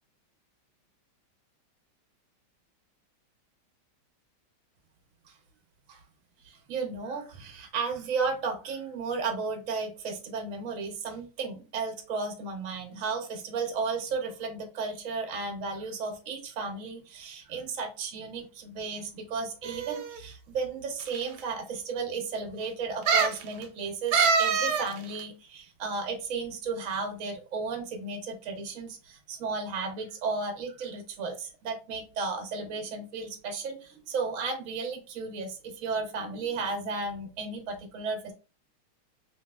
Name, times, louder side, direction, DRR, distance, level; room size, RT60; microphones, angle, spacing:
voice 1, 6.4-38.3, right 4 dB, 65° right, 3 dB, 0.8 m, -34 dB
sound 1, 19.6-20.2 21.0-21.1 21.4-21.5 23.1-23.4 24.1-24.9 25.2-25.3, right 5 dB, 80° right, 1.4 m, -24 dB
3.1 x 2.9 x 2.2 m, 0.33 s
omnidirectional pair, 2.3 m